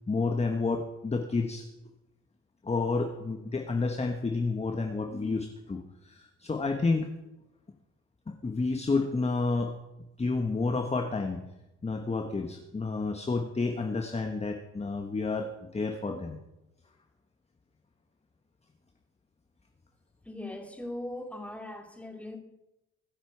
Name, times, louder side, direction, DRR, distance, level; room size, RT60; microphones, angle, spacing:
voice 1, 0.1-1.7 2.6-7.1 8.3-9.7 10.2-11.4 11.8-16.4, left 3 dB, 20° left, 1.2 m, -30 dB
voice 2, 20.2-22.4, left 1 dB, 5° left, 2.4 m, -39 dB
23.5 x 8.1 x 4.7 m
cardioid pair, 90°, 30 cm